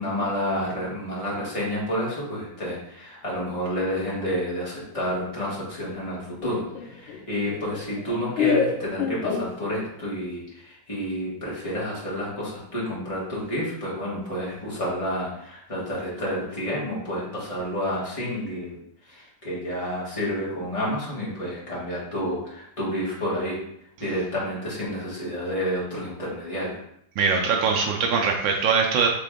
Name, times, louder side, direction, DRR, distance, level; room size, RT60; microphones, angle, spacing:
voice 1, 0.0-23.6 24.0-26.8, equal, 20° left, -7 dB, 0.9 m, -30 dB
Laughter, 6.4-10.1, left 6 dB, 75° left, 1.2 m, -28 dB
voice 2, 27.2-29.1, right 5 dB, 75° right, 1 dB, 1.1 m, -22 dB
3.7 x 3.4 x 3.5 m, 0.73 s
omnidirectional pair, 2.4 m